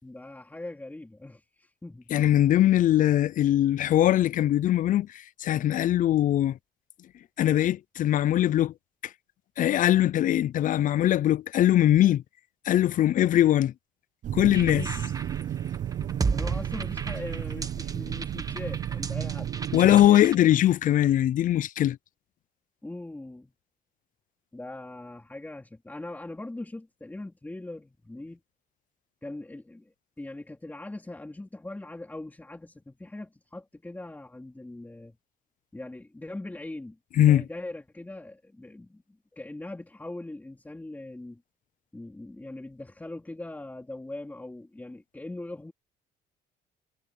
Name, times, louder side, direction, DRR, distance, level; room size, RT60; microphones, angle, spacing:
voice 1, 0.0-2.0 14.7-15.0 16.3-19.5 22.8-23.5 24.5-28.4 29.2-35.2 35.7-41.4 41.9-45.7, left 2 dB, 10° left, 3.4 m, -41 dB
voice 2, 2.1-5.1 5.4-6.6 7.4-8.7 9.6-12.2 12.7-13.7 14.3-14.8 19.7-22.0 37.2-37.4, left 12 dB, 50° left, 0.6 m, -21 dB
sound 1, 14.2-20.1, right 10 dB, 50° right, 0.6 m, -33 dB
sound 2, 14.5-20.3, right 4 dB, 20° right, 1.5 m, -34 dB
cardioid pair, 110°, 17 cm